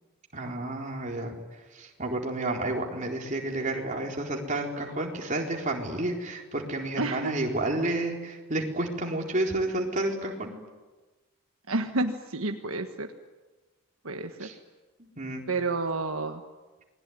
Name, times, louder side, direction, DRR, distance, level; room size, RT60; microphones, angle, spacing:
voice 1, 0.3-1.3 1.7-10.5 14.4-14.5 15.0-15.4, right 2 dB, 35° right, 1 dB, 4.2 m, -30 dB
voice 2, 7.0-7.4 11.7-13.1 14.0-14.5 15.5-16.4, right 2 dB, 70° right, 5 dB, 1.5 m, -30 dB
28.5 x 21.5 x 9.5 m, 1.2 s
head